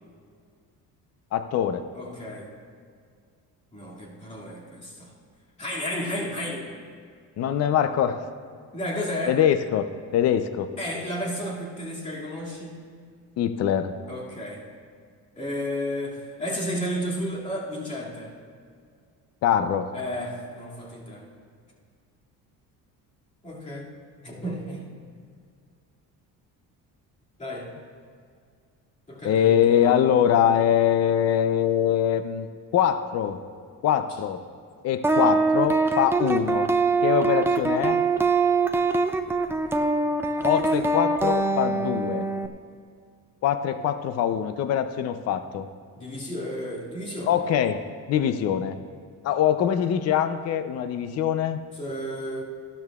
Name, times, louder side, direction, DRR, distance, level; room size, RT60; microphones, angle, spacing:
voice 1, 1.3-1.8 7.4-8.2 9.3-9.8 10.1-10.7 13.4-13.9 19.4-19.9 29.2-32.5 32.7-33.4 33.8-34.4 34.8-36.7 37.0-38.0 40.4-42.2 43.4-45.7 47.3-47.8 48.1-48.8 49.2-51.6, left 9 dB, 50° left, 10 dB, 0.6 m, -23 dB
voice 2, 1.9-2.5 3.7-5.1 5.6-6.7 8.7-9.4 10.8-12.8 14.1-14.7 15.3-18.3 19.9-21.3 23.4-23.9 24.2-24.9 27.4-27.7 29.1-29.9 40.4-40.8 46.0-47.4 51.8-52.4, equal, 20° left, -5 dB, 2.3 m, -32 dB
sound 1, 35.0-42.5, right 3 dB, 10° right, 0.4 m, -23 dB
16.0 x 12.5 x 2.4 m, 2.1 s
cardioid pair, 135°, 34 cm